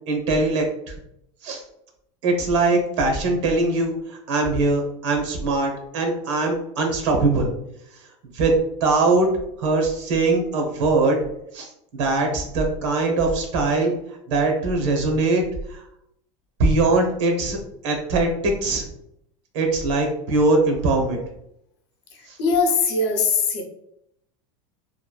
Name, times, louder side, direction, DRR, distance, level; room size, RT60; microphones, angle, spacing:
voice 1, 0.1-0.6 1.4-1.6 2.2-7.5 8.3-8.5 8.8-9.3 9.6-11.2 11.5-13.9 14.3-15.4 15.7-15.8 16.6-17.6 17.8-18.8 19.5-21.2 22.3-22.4, right 3 dB, 80° right, 2 dB, 0.9 m, -21 dB
voice 2, 22.4-23.6, left 4 dB, 65° left, 3 dB, 0.6 m, -20 dB
3.1 x 2.3 x 2.2 m, 0.78 s
supercardioid pair, 175°, 15 cm